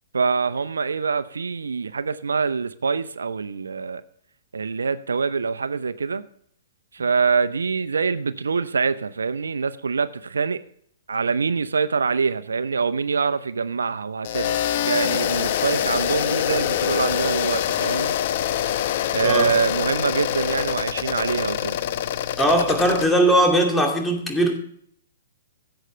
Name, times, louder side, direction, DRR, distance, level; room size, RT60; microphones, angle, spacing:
voice 1, 0.1-4.0 4.5-6.2 6.9-10.6 11.1-18.1 19.1-21.8, right 5 dB, 90° right, 0.6 m, -25 dB
sound 1, 14.2-23.1, left 11 dB, 55° left, 0.9 m, -25 dB
voice 2, 19.2-19.6 22.4-24.6, right 1 dB, 5° left, 2.5 m, -19 dB
16.0 x 7.9 x 3.2 m
hypercardioid pair, 130°, 0 cm